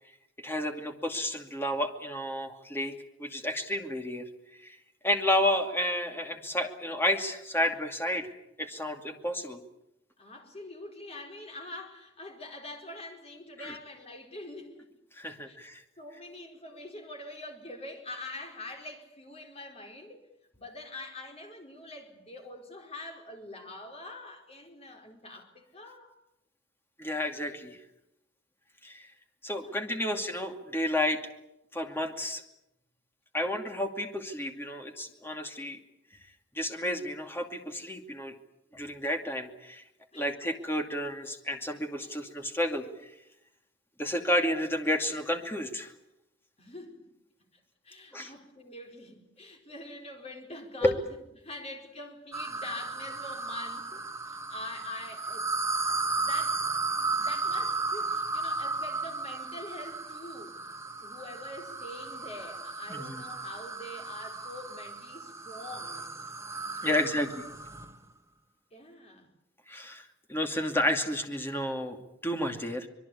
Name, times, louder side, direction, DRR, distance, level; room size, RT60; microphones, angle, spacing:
voice 1, 0.4-2.9 3.2-4.3 4.6-4.8 5.0-8.3 8.6-9.6 13.6-13.8 15.2-15.8 27.0-27.8 28.8-29.1 29.4-31.2 31.7-32.4 33.3-35.8 36.5-38.3 38.7-39.8 40.1-42.8 44.0-45.9 48.1-48.3 50.8-51.0 62.9-63.2 66.8-67.3 69.7-72.0 72.2-72.9, left 1 dB, 10° left, 2.5 m, -31 dB
voice 2, 10.2-14.9 15.2-15.6 16.0-20.2 20.6-26.1 27.3-27.8 29.6-30.1 40.1-40.3 46.6-47.1 47.8-55.5 55.8-60.7 61.0-66.1 66.8-67.2 68.7-69.3, left 1 dB, 35° left, 4.6 m, -44 dB
sound 1, 52.3-67.9, right 3 dB, 15° right, 1.4 m, -34 dB
25.5 x 22.0 x 8.6 m
head